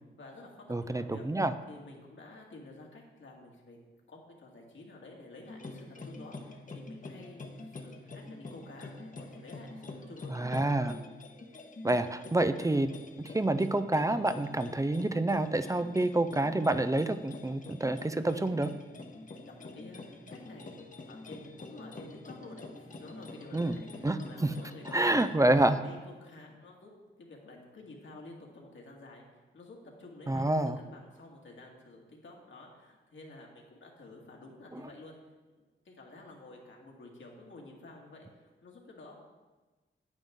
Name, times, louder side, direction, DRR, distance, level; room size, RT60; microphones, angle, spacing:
voice 1, 0.2-1.3 1.7-3.8 4.1-10.4 19.3-20.8 21.1-25.3 25.6-26.9 27.2-29.2 29.5-35.1 35.6-39.2, left 2 dB, 70° left, 0 dB, 1.9 m, -51 dB
voice 2, 0.7-1.5 10.3-11.0 11.8-12.9 13.2-18.7 23.5-23.8 24.0-24.5 24.9-25.8 30.3-30.8 34.7-34.8, right 2 dB, 15° right, 11 dB, 0.4 m, -28 dB
sound 1, 5.4-25.4, left 2 dB, 40° left, 1.1 m, -46 dB
9.4 x 9.1 x 3.6 m, 1.2 s
cardioid pair, 75°, 21 cm